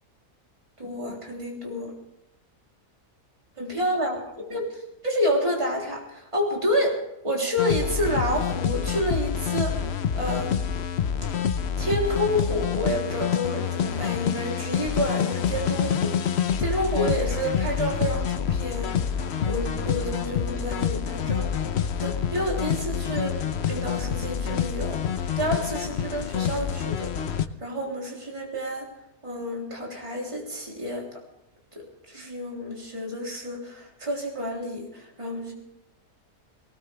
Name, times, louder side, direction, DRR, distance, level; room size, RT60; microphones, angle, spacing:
voice 1, 0.8-1.9 3.6-4.2 4.5-7.0 7.2-9.8 10.1-10.7 11.8-16.2 16.6-21.5 22.0-23.4 23.7-27.1 27.6-28.9 29.2-31.2 31.7-35.5, equal, 20° right, -2 dB, 3.4 m, -29 dB
sound 1, 7.6-27.5, left 8 dB, 55° left, 0.9 m, -27 dB
19.0 x 19.0 x 3.4 m, 0.85 s
omnidirectional pair, 1.5 m